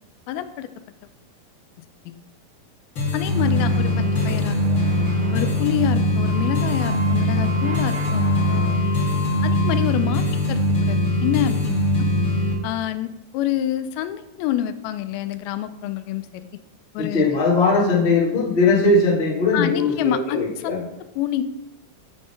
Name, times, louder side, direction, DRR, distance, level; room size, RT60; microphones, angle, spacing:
voice 1, 0.3-0.7 2.1-2.2 3.1-4.6 5.3-8.7 9.4-11.8 12.6-16.5 16.9-17.4 19.5-20.8 21.2-21.4, left 12 dB, 90° left, 11 dB, 2.4 m, -27 dB
sound 1, 3.0-12.5, left 1 dB, 40° left, 1.9 m, -21 dB
sound 2, 3.3-8.7, right 1 dB, 75° right, 3.2 m, -40 dB
Wind instrument woodwind instrument, 6.2-9.9, left 2 dB, 50° right, 3.4 m, -34 dB
voice 2, 17.0-20.8, left 3 dB, 60° left, -5 dB, 0.6 m, -19 dB
8.5 x 3.5 x 5.3 m, 0.90 s
omnidirectional pair, 4.2 m